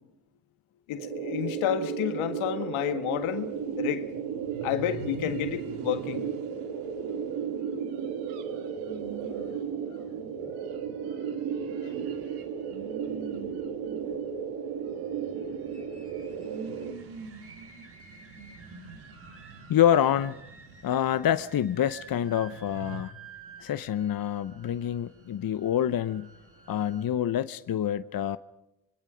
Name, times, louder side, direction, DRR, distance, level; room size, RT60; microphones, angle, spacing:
voice 1, 0.9-4.1 4.6-6.3, left 11 dB, 80° left, 1.8 m, -30 dB
sound 1, 1.0-16.9, right 7 dB, 70° right, 2.2 m, -34 dB
sound 2, 3.1-23.0, right 5 dB, 85° right, 2.3 m, -47 dB
sound 3, 12.0-27.1, right 4 dB, 25° right, 5.8 m, -52 dB
voice 2, 19.7-20.4 20.8-23.1 23.6-26.3 26.7-28.4, left 10 dB, 45° left, 0.9 m, -26 dB
25.5 x 23.0 x 5.1 m
supercardioid pair, 60°, 48 cm